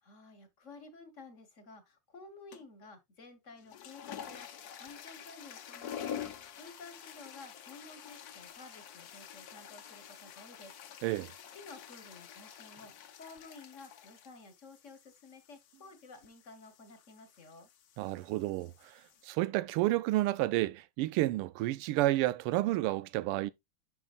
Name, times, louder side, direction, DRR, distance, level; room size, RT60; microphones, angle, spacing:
voice 1, 0.0-4.5 4.8-6.3 6.6-10.7 11.5-12.9 13.2-17.7, left 3 dB, 40° left, 1.2 m, -53 dB
sound 1, 2.5-2.8 3.5-19.3, left 9 dB, 60° left, 1.0 m, -48 dB
voice 2, 18.0-23.5, right 17 dB, 85° right, 1.5 m, -31 dB
11.0 x 5.7 x 2.4 m
omnidirectional pair, 2.4 m